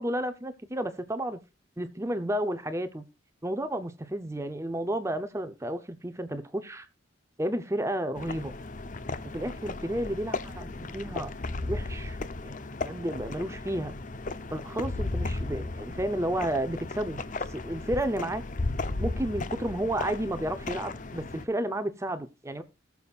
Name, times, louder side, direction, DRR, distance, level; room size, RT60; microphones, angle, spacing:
voice 1, 0.0-1.4 1.8-3.0 3.4-6.9 7.4-8.5 9.3-11.3 11.6-12.6 12.8-13.9 14.5-17.2 17.5-18.4 19.0-22.6, right 1 dB, 15° right, 0.6 m, -32 dB
sound 1, 8.2-21.4, left 2 dB, 40° left, 0.6 m, -35 dB
19.0 x 7.0 x 2.4 m
head